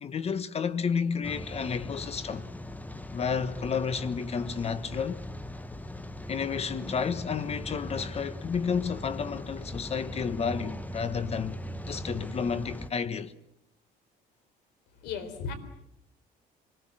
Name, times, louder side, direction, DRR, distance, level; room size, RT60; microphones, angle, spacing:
voice 1, 0.0-2.4 3.1-5.2 6.3-11.6 11.9-13.3, left 6 dB, 40° left, 1.3 m, -31 dB
Rain, 1.2-12.9, left 1 dB, 10° left, 1.1 m, -40 dB
voice 2, 15.0-15.5, left 6 dB, 85° left, 3.9 m, -35 dB
26.5 x 20.5 x 7.7 m
cardioid pair, 110°, 17 cm